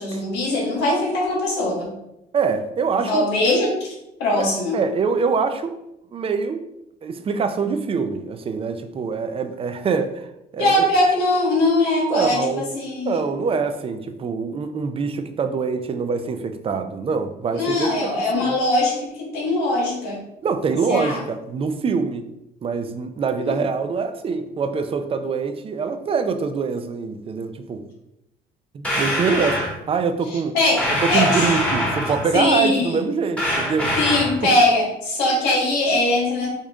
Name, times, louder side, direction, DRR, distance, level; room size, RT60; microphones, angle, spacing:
voice 1, 0.0-1.9 2.9-3.9 4.2-4.8 10.6-13.2 17.6-20.2 20.9-21.2 23.4-23.6 30.3-30.8 31.1-31.6 32.0-33.0 34.0-36.5, left 2 dB, 85° left, -2 dB, 1.5 m, -21 dB
voice 2, 2.3-3.2 4.4-4.5 4.7-5.8 6.1-6.7 7.0-10.3 10.5-10.8 12.1-12.6 13.1-18.5 20.4-22.3 22.6-27.8 28.7-29.6 29.9-30.6 31.0-34.0, right 5 dB, 35° right, 8 dB, 0.4 m, -24 dB
sound 1, 28.8-29.7 30.8-32.4 33.4-34.4, equal, 5° left, 1.4 m, -23 dB
5.0 x 2.7 x 3.5 m, 0.86 s
cardioid pair, 110°, 17 cm